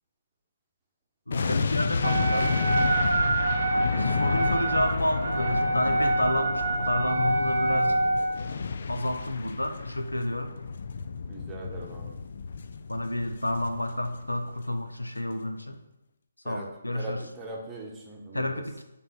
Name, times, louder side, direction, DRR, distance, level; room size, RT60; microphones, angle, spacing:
voice 1, 1.3-2.9 3.9-8.0 8.9-10.5 12.9-15.8 16.5-17.2 18.3-18.8, left 1 dB, 80° left, 7 dB, 0.7 m, -30 dB
sound 1, 1.3-14.5 14.7-14.9, left 5 dB, 50° left, 0.4 m, -31 dB
Wind instrument woodwind instrument, 2.0-8.5, right 3 dB, 50° right, 0.7 m, -27 dB
voice 2, 11.3-12.2 16.4-16.7 16.9-18.6, right 2 dB, 10° right, -2 dB, 1.2 m, -40 dB
7.6 x 3.5 x 6.0 m, 0.94 s
figure-of-eight pair, 140°, 0 cm